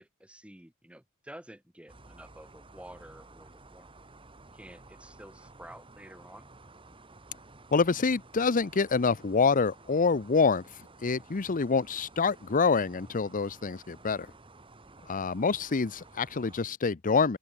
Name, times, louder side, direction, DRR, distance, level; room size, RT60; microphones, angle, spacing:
voice 1, 0.0-3.9 4.5-6.5 14.8-15.0, right 1 dB, 5° right, 2.2 m, -50 dB
sound 1, 1.9-16.6, right 2 dB, 25° right, 1.8 m, -54 dB
voice 2, 7.7-10.6 11.0-14.3 15.1-17.4, left 4 dB, 40° left, 0.6 m, -26 dB
open air
head